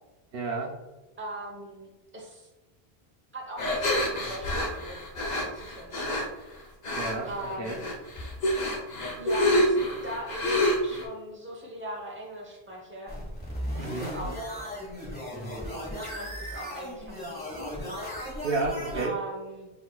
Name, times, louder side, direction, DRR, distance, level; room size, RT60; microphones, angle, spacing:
voice 1, 0.3-0.7 6.9-7.3 7.6-7.8 13.8-14.1 18.4-19.1, right 3 dB, 70° right, 1 dB, 0.8 m, -30 dB
voice 2, 1.2-2.5 3.3-6.2 7.3-7.9 9.2-9.8 10.0-13.2 13.7-14.5 15.0-15.2 16.0-17.7 18.9-19.7, right 1 dB, 15° right, -2 dB, 0.8 m, -40 dB
sound 1, 3.6-6.2 6.8-7.3 7.6-11.0, left 1 dB, 50° left, 0.7 m, -27 dB
sound 2, 13.1-19.1, equal, 10° left, 1.4 m, -36 dB
5.8 x 3.2 x 2.3 m, 1.1 s
omnidirectional pair, 1.0 m